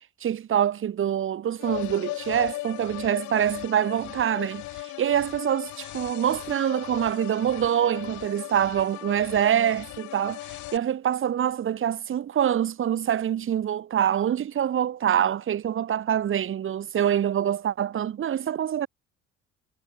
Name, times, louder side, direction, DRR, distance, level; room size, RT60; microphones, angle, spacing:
voice 1, 0.2-18.9, right 10 dB, 45° right, 1.8 m, -25 dB
sound 1, 1.6-10.8, left 19 dB, 75° left, 2.2 m, -37 dB
cardioid pair, 110°, 29 cm